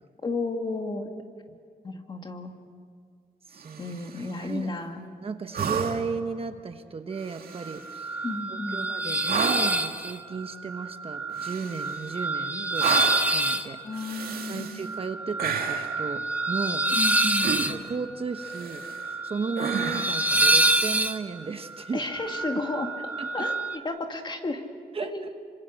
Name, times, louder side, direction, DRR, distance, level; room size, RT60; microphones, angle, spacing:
voice 1, 0.2-1.1 1.8-2.5 3.8-5.1 8.2-8.8 13.8-14.8 16.9-17.6 21.9-22.9 23.3-24.6 25.0-25.3, left 3 dB, 30° left, 4 dB, 2.2 m, -32 dB
voice 2, 3.5-4.7 5.2-8.2 8.5-13.8 14.5-16.9 17.4-22.0 23.2-23.5 24.9-25.3, right 4 dB, 35° right, 7 dB, 1.2 m, -35 dB
sound 1, 3.6-4.3 5.5-6.2 7.2-7.9 9.3-9.8 11.4-12.1 12.8-13.4 13.9-14.9 15.4-16.0 17.4-18.0 18.4-19.1 19.6-20.3 22.2-22.3, right 6 dB, 75° right, 2.1 m, -32 dB
sound 2, 7.6-23.8, right 2 dB, 10° right, 1.3 m, -27 dB
27.5 x 25.5 x 6.6 m, 2.1 s
wide cardioid pair, 130°, 16 cm